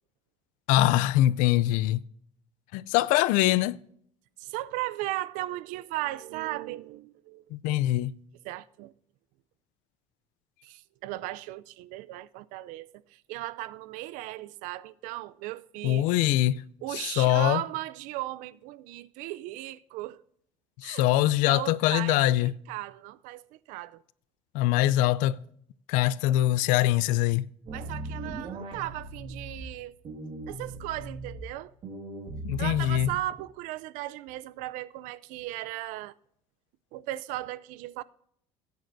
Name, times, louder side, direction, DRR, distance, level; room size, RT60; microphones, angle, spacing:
voice 1, 0.7-2.0 2.7-3.8 7.5-8.1 15.8-16.6 16.9-17.6 20.8-22.5 24.5-25.4 25.9-27.5 32.4-33.1, left 14 dB, 80° left, 0.4 m, -23 dB
voice 2, 4.4-7.4 8.4-8.9 10.6-16.3 16.8-20.2 20.8-21.1 21.4-24.0 27.7-30.0 30.5-31.7 32.6-36.1 36.9-38.0, right 16 dB, 75° right, 0.5 m, -36 dB
sound 1, 27.7-29.6 30.0-31.4 31.8-33.4, right 2 dB, 45° right, 1.9 m, -38 dB
17.0 x 9.3 x 2.6 m
cardioid pair, 135°, 13 cm